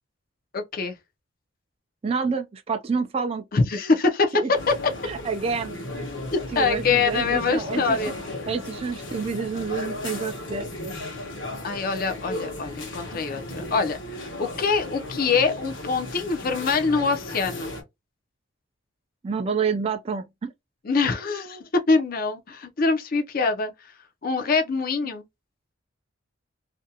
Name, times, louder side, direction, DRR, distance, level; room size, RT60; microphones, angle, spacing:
voice 1, 0.5-0.9 3.5-4.9 6.3-8.1 11.6-17.7 20.8-23.7 24.2-25.2, left 4 dB, 45° left, 0.5 m, -24 dB
voice 2, 2.0-3.4 4.3-4.5 5.0-5.8 6.5-8.0 8.5-11.0 19.2-20.5, right 5 dB, 30° right, 0.3 m, -28 dB
sound 1, 4.5-17.8, left 2 dB, 65° left, 0.9 m, -35 dB
2.5 x 2.1 x 2.7 m
head